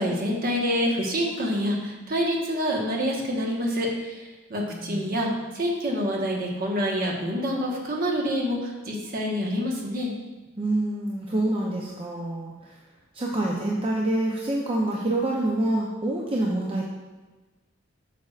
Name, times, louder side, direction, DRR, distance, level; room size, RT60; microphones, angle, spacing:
voice 1, 0.0-5.3 5.5-10.1, equal, 50° right, -1 dB, 1.3 m, -27 dB
voice 2, 4.7-5.2 10.6-12.7 13.1-16.8, right 1 dB, 30° right, -3 dB, 0.7 m, -27 dB
8.3 x 6.5 x 2.5 m, 1.2 s
head